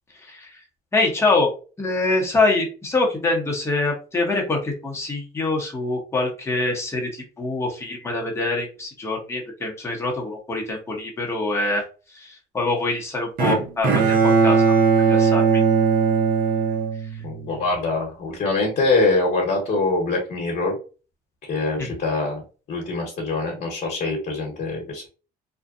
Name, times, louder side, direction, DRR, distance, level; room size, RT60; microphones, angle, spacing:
voice 1, 0.9-1.5 1.8-11.8 12.1-14.7 15.1-15.6 21.8-21.9, left 2 dB, 15° left, 0 dB, 0.8 m, -24 dB
Bowed string instrument, 13.4-17.6, right 5 dB, 55° right, 0.6 m, -19 dB
voice 2, 17.2-20.8 21.5-25.1, left 3 dB, 50° left, -1 dB, 1.0 m, -24 dB
2.6 x 2.1 x 2.4 m, 0.35 s
cardioid pair, 110°, 17 cm